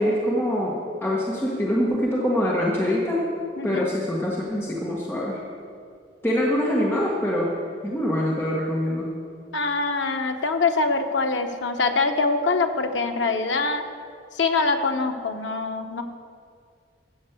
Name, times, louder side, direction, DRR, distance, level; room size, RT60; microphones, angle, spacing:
voice 1, 0.0-3.3 3.6-5.4 6.2-7.5 7.8-9.2, equal, 15° left, -5 dB, 1.4 m, -24 dB
voice 2, 3.6-3.9 9.5-13.8 14.3-16.0, left 3 dB, 90° left, 5 dB, 1.0 m, -24 dB
14.0 x 6.3 x 8.2 m, 2.3 s
head